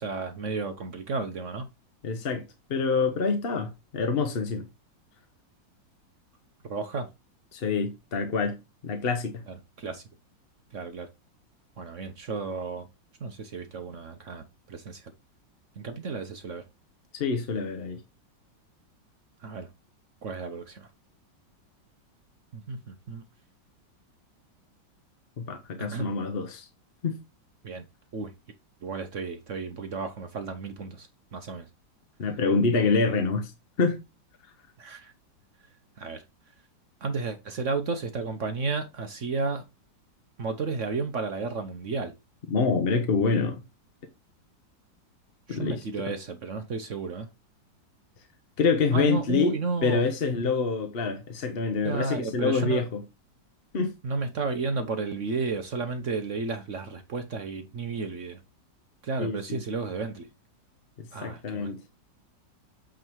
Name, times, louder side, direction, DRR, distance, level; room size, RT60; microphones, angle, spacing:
voice 1, 0.0-1.7 6.6-7.1 9.5-10.0 10.7-11.1 11.8-12.9 13.2-15.1 15.8-16.6 19.4-19.7 20.2-20.9 22.5-23.2 25.8-26.1 27.6-27.8 28.1-28.3 28.8-31.7 34.8-35.1 36.0-36.2 37.0-39.6 40.4-42.1 45.5-47.3 48.9-50.0 51.8-52.8 54.0-58.4 59.0-60.3 61.1-61.7, right 4 dB, 50° right, 1.0 m, -32 dB
voice 2, 2.0-2.4 2.7-4.6 7.5-8.6 8.8-9.4 17.1-18.0 25.4-26.7 27.0-27.2 32.2-33.5 33.8-34.0 42.5-43.6 45.5-45.8 48.6-49.5 49.8-53.0 53.7-53.9 59.2-59.6 61.2-61.8, left 4 dB, 45° left, 0.8 m, -26 dB
8.4 x 3.8 x 4.6 m
omnidirectional pair, 2.0 m